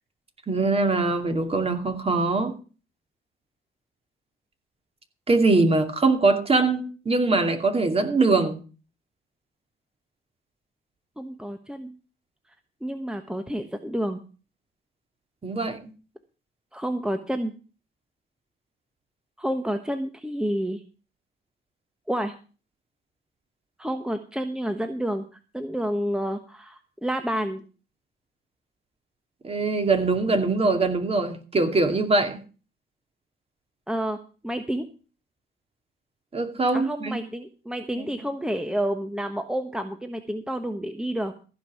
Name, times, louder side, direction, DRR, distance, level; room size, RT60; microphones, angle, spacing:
voice 1, 0.5-2.5 5.3-8.6 15.4-15.9 29.4-32.4 36.3-37.2 38.0-38.1, right 3 dB, 30° right, 2.5 m, -22 dB
voice 2, 11.2-11.9 12.8-14.2 16.7-17.5 19.4-20.8 22.1-22.3 23.8-25.2 25.5-27.6 33.9-34.2 34.4-34.9 36.7-41.3, equal, 5° right, 1.2 m, -29 dB
15.0 x 5.5 x 8.1 m
cardioid pair, 90°, 20 cm